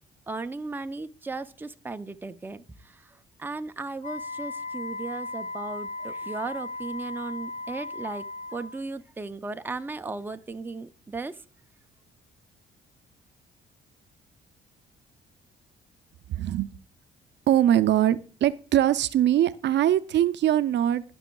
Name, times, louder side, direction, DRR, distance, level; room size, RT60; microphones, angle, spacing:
voice 1, 0.3-8.2 8.5-11.4, right 3 dB, 10° right, 9 dB, 0.5 m, -36 dB
Wind instrument woodwind instrument, 4.0-8.8, left 2 dB, 40° left, 0.6 m, -36 dB
voice 2, 16.4-16.7 17.5-21.0, right 11 dB, 65° right, 12 dB, 0.5 m, -22 dB
17.0 x 6.2 x 2.3 m, 0.38 s
cardioid pair, 90°, 20 cm